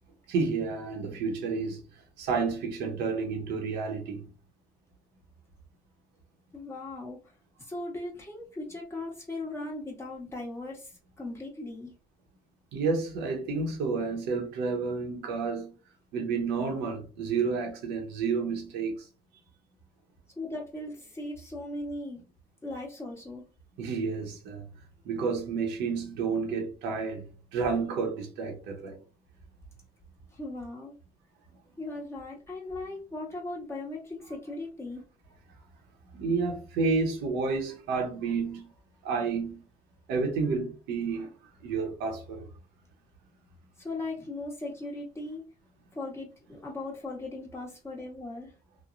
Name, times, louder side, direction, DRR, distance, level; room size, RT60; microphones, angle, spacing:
voice 1, 0.3-1.8 2.2-4.3 12.7-15.7 16.1-19.1 23.8-24.7 25.0-29.0 36.1-38.7 39.0-39.6 40.1-41.3 41.6-42.5, right 4 dB, 85° right, 0.9 m, -30 dB
voice 2, 6.5-7.3 7.6-12.0 20.4-22.2 22.6-23.4 30.3-31.0 31.8-35.0 43.8-45.4 45.9-48.5, left 2 dB, 15° left, 1.1 m, -38 dB
3.0 x 2.1 x 2.5 m
cardioid pair, 110°, 17 cm